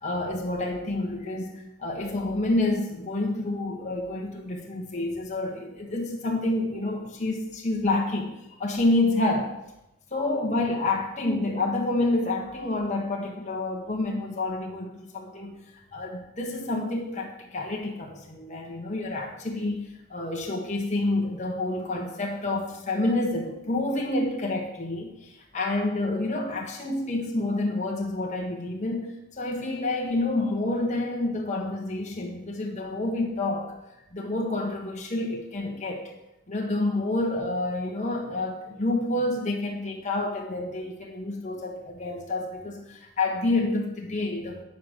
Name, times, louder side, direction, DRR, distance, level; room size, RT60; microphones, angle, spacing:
voice 1, 0.0-8.3 8.6-9.5 10.1-15.6 15.9-29.0 29.3-33.7 34.1-36.1 36.5-44.6, left 2 dB, 30° left, 0 dB, 1.5 m, -28 dB
9.5 x 5.1 x 6.4 m, 0.87 s
head